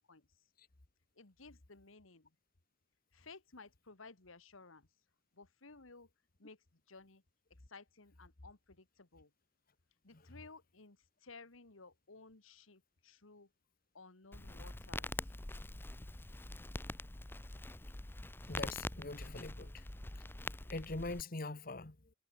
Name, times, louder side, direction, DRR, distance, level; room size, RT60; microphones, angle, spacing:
voice 1, 1.2-2.2 3.1-4.8 5.4-6.1 6.4-6.6 6.9-7.2 7.7-9.3 10.0-11.0 11.2-13.5 13.9-15.1, left 3 dB, 85° left, 2.0 m, -56 dB
Crackle, 14.3-21.2, left 2 dB, 10° left, 0.5 m, -44 dB
voice 2, 18.5-19.9 20.1-20.2 20.7-22.0, left 2 dB, 45° left, 1.4 m, -43 dB
head